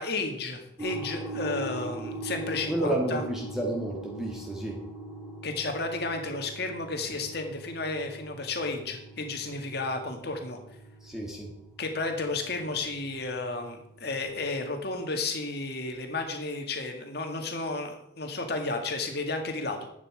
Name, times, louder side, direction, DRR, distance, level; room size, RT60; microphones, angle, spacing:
voice 1, 0.0-3.2 5.4-10.6 11.8-19.9, left 3 dB, 55° left, 4 dB, 1.9 m, -32 dB
sound 1, 0.8-14.5, right 2 dB, 20° right, 2.9 m, -42 dB
voice 2, 2.7-4.8 11.0-11.5, right 1 dB, 5° right, -2 dB, 1.6 m, -31 dB
11.0 x 8.7 x 4.7 m, 0.80 s
head